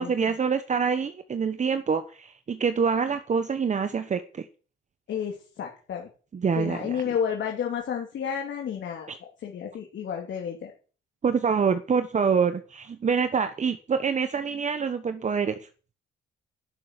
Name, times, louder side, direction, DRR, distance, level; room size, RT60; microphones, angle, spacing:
voice 1, 0.0-4.5 6.3-7.0 9.1-9.2 11.2-15.7, right 6 dB, 35° right, 10 dB, 1.1 m, -26 dB
voice 2, 5.1-6.1 6.5-10.7, left 8 dB, 65° left, 0 dB, 3.1 m, -31 dB
11.5 x 6.8 x 9.8 m, 0.38 s
cardioid pair, 90°, 20 cm